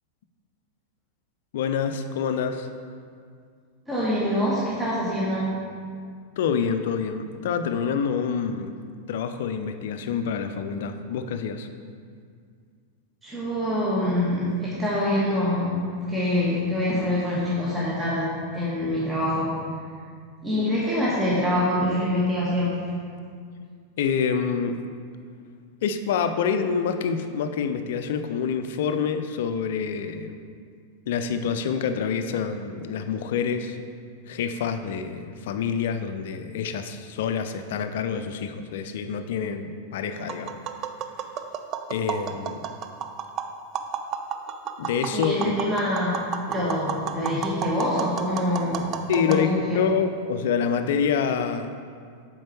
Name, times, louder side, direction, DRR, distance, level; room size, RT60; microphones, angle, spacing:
voice 1, 1.5-2.7 6.4-8.7 9.1-11.7 24.0-24.8 25.8-30.4 31.1-33.8 34.3-40.6 41.9-42.6 44.8-45.5 49.1-51.7, left 6 dB, 55° left, 8 dB, 0.5 m, -27 dB
voice 2, 3.9-5.5 13.2-15.8 16.1-19.5 20.4-22.7 45.1-46.2 46.5-48.9 49.2-49.8, left 1 dB, 15° right, -7 dB, 1.4 m, -25 dB
Tap, 40.2-49.4, right 7 dB, 35° right, 0.4 m, -33 dB
7.5 x 4.6 x 4.4 m, 2.1 s
figure-of-eight pair, 90°, 0 cm